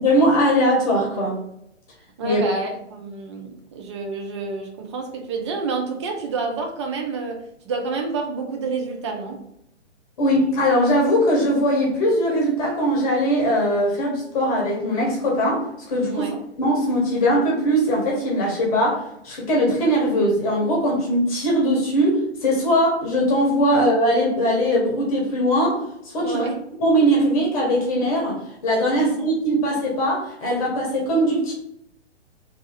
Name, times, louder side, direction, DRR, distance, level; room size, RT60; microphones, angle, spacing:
voice 1, 0.0-1.4 2.2-2.4 10.2-16.3 16.6-26.4 26.8-31.5, equal, 30° left, -2 dB, 1.0 m, -20 dB
voice 2, 2.2-9.4 16.1-16.4 23.7-23.8 26.2-26.6 28.9-29.3, right 4 dB, 25° right, 3 dB, 0.4 m, -29 dB
3.2 x 2.6 x 3.3 m, 0.78 s
figure-of-eight pair, 125°, 36 cm